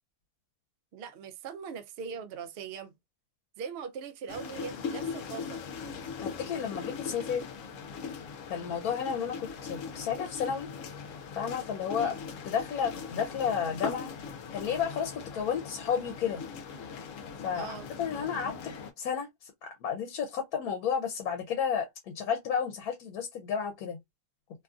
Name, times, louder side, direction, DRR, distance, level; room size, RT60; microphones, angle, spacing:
voice 1, 0.9-2.9 3.6-5.6 12.0-12.2 17.5-17.9, right 6 dB, 70° right, 0.6 m, -41 dB
sound 1, 4.3-18.9, left 5 dB, 70° left, 0.9 m, -40 dB
voice 2, 6.2-7.5 8.5-10.7 11.4-12.1 12.4-14.1 14.5-16.4 17.4-17.7 18.0-24.0, left 7 dB, 90° left, 1.1 m, -32 dB
2.8 x 2.4 x 2.3 m
omnidirectional pair, 1.5 m